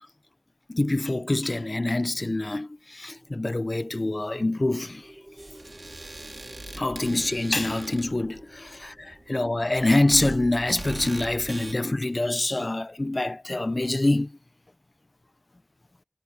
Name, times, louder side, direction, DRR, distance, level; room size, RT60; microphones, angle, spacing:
voice 1, 0.7-5.1 6.7-14.3, left 2 dB, 60° left, 0.4 m, -26 dB
sound 1, 2.8-11.3, right 1 dB, 30° right, 5.3 m, -53 dB
sound 2, 5.4-11.7, right 2 dB, 75° right, 3.3 m, -41 dB
wide cardioid pair, 40°, 0 cm